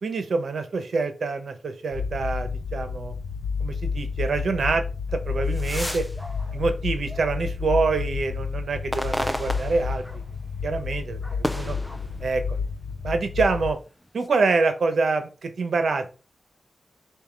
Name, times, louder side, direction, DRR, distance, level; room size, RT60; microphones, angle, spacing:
voice 1, 0.0-3.1 3.6-4.8 5.1-6.1 6.5-10.0 10.6-11.8 12.2-12.6 13.0-13.8 14.1-16.1, right 4 dB, 65° right, 8 dB, 1.1 m, -26 dB
sound 1, 1.9-13.7, left 5 dB, 85° left, 0.6 m, -30 dB
sound 2, 5.3-7.7 8.2-10.5 10.8-12.7 13.3-14.3, equal, 5° left, 0.5 m, -34 dB
7.2 x 2.7 x 5.2 m, 0.33 s
wide cardioid pair, 120°, 0 cm